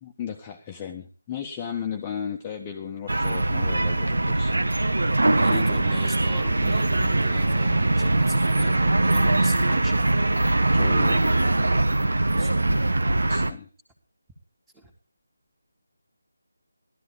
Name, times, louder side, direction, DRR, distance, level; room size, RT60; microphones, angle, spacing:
voice 1, 0.0-4.6 10.7-11.3 13.3-13.7, left 8 dB, 15° left, 1 dB, 1.3 m, -35 dB
sound 1, 3.1-13.5, right 2 dB, 70° right, 1.4 m, -22 dB
voice 2, 5.4-10.3 12.4-12.9 14.7-14.9, right 2 dB, 10° right, 2 dB, 2.6 m, -38 dB
16.5 x 13.0 x 3.8 m, 0.35 s
figure-of-eight pair, 160°, 0 cm